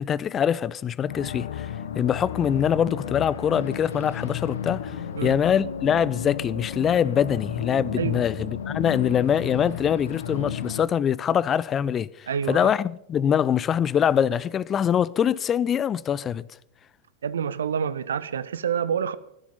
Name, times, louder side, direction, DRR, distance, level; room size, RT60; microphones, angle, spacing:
voice 1, 0.0-5.0 5.2-16.4, left 8 dB, 25° left, 0.5 m, -24 dB
sound 1, 1.1-10.8, left 8 dB, 65° left, 1.2 m, -33 dB
voice 2, 12.3-12.7 17.2-19.2, right 7 dB, 65° right, 1.0 m, -27 dB
15.5 x 14.0 x 5.4 m
figure-of-eight pair, 90°, 0 cm